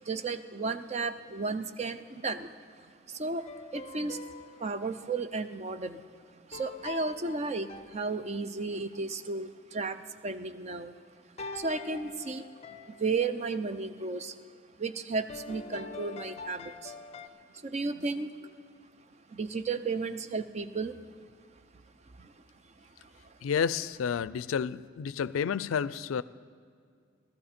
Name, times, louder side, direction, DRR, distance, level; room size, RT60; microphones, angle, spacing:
voice 1, 0.0-3.5 3.7-4.2 4.6-6.0 6.5-10.9 11.5-12.5 12.9-14.4 14.8-17.0 17.6-18.5 19.3-21.0 22.2-22.3 22.6-23.3, right 4 dB, 35° right, 11 dB, 0.5 m, -34 dB
sound 1, 3.4-4.9 6.5-8.7 11.4-13.4 15.3-17.3, left 4 dB, 30° left, 0.6 m, -44 dB
voice 2, 23.4-26.2, left 7 dB, 85° left, 18 dB, 0.4 m, -30 dB
17.5 x 13.0 x 4.3 m, 2.1 s
head